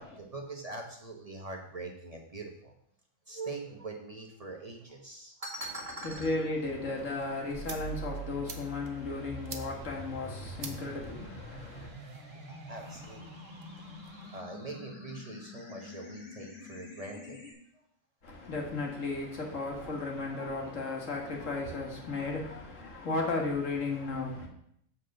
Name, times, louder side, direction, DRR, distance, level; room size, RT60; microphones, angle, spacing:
voice 1, 0.0-2.7 3.3-6.3 12.5-13.3 14.3-17.5 17.7-17.8, right 2 dB, 30° right, 1.1 m, -42 dB
voice 2, 6.0-11.9 18.2-24.5, left 3 dB, 75° left, 1.9 m, -35 dB
sound 1, 7.0-14.4, right 5 dB, 70° right, 1.2 m, -50 dB
sound 2, 7.5-17.5, equal, 55° left, 1.7 m, -45 dB
7.3 x 4.2 x 6.5 m
omnidirectional pair, 1.3 m